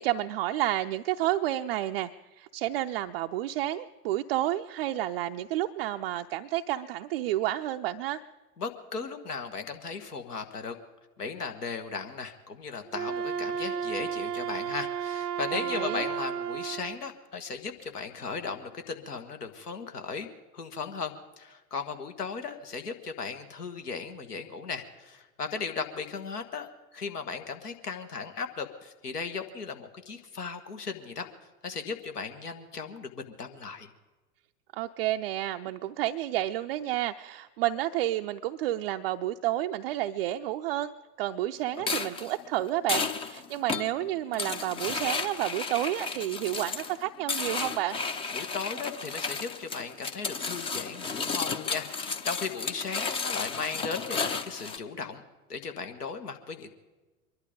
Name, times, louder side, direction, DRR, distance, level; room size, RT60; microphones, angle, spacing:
voice 1, 0.0-8.2 15.5-16.1 34.7-40.9 41.2-48.0, right 14 dB, 40° right, 6 dB, 0.4 m, -30 dB
voice 2, 8.6-10.7 11.2-20.3 20.5-26.7 26.9-31.3 31.6-33.9 48.3-55.2 55.5-56.7, left 5 dB, 75° left, 7 dB, 1.5 m, -37 dB
Wind instrument woodwind instrument, 12.9-17.0, right 8 dB, 80° right, 0.7 m, -33 dB
sound 1, 41.8-54.8, left 4 dB, 10° left, 0.4 m, -33 dB
23.5 x 11.5 x 5.1 m, 1.2 s
figure-of-eight pair, 90°, 46 cm